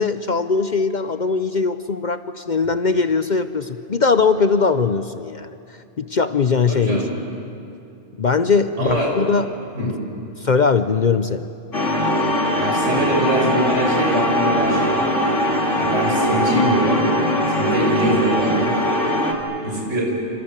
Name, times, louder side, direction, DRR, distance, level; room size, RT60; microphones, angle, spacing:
voice 1, 0.0-5.6 6.0-7.1 8.2-9.9 10.4-11.5, left 5 dB, 45° left, 11 dB, 0.7 m, -20 dB
voice 2, 6.7-7.1 8.8-9.1 9.7-9.9 12.5-15.1 15.8-17.1 17.5-18.7 19.6-20.1, right 1 dB, 80° right, -1 dB, 6.2 m, -23 dB
sound 1, 11.7-19.3, equal, 80° left, 3.1 m, -20 dB
27.5 x 26.5 x 7.4 m, 2.6 s
omnidirectional pair, 1.2 m